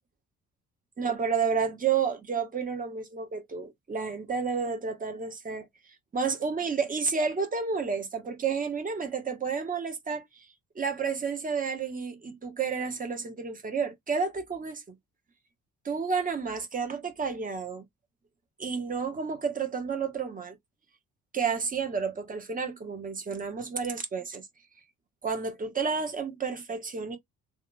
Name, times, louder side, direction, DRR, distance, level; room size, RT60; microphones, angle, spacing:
voice 1, 1.0-5.7 6.1-10.5 10.7-14.8 15.8-17.8 18.6-20.6 21.3-24.5 25.2-27.2, right 5 dB, 20° right, 0.7 m, -31 dB
2.7 x 2.3 x 2.5 m
figure-of-eight pair, 45°, 43 cm